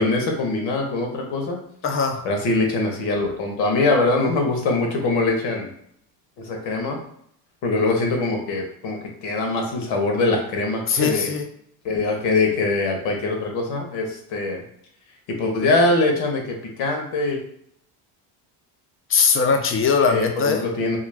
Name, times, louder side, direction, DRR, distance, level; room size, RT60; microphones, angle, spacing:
voice 1, 0.0-1.6 2.2-5.7 6.4-7.0 7.6-11.3 11.8-14.6 15.4-17.4 20.1-21.0, left 2 dB, 75° left, 2 dB, 1.0 m, -23 dB
voice 2, 1.8-2.2 10.9-11.4 19.1-20.6, left 5 dB, 30° left, 5 dB, 0.5 m, -20 dB
2.4 x 2.2 x 3.2 m, 0.68 s
supercardioid pair, 85°, 46 cm